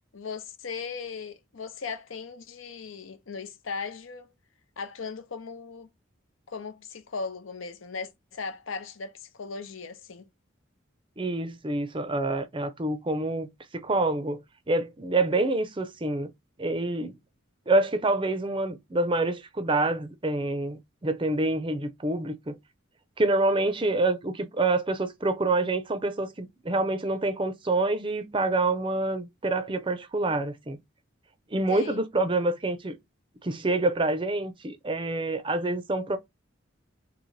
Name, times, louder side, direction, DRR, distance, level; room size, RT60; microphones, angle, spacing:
voice 1, 0.1-4.3 4.8-5.9 6.5-10.3 31.7-32.0, left 5 dB, 80° left, 0.7 m, -38 dB
voice 2, 11.2-13.5 13.7-14.4 14.7-16.3 16.6-17.1 17.7-22.6 23.2-30.8 31.5-33.0 33.4-36.2, right 2 dB, 25° right, 0.5 m, -27 dB
3.2 x 2.9 x 3.9 m
head